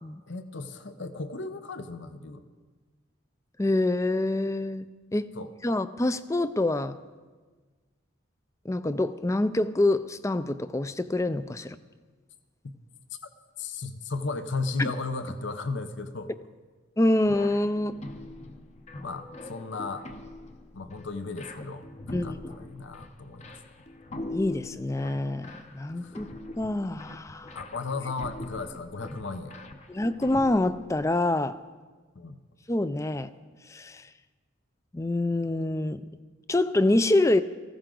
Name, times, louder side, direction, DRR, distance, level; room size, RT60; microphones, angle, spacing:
voice 1, 0.3-2.4 5.3-5.5 13.6-16.3 19.0-20.1 20.7-23.6 26.0-26.2 27.5-29.6 32.1-32.4, left 3 dB, 65° left, 10 dB, 0.8 m, -35 dB
voice 2, 3.6-4.9 5.1-5.3 5.6-7.0 8.7-11.8 14.8-14.9 17.0-18.0 22.1-22.5 24.3-26.3 26.6-27.6 29.9-31.6 32.7-33.3 33.7-34.0 34.9-36.0 36.5-37.4, left 2 dB, 15° left, 14 dB, 0.4 m, -26 dB
sound 1, 17.2-31.0, left 1 dB, 35° left, 0.8 m, -43 dB
19.0 x 15.5 x 3.8 m, 1.4 s
head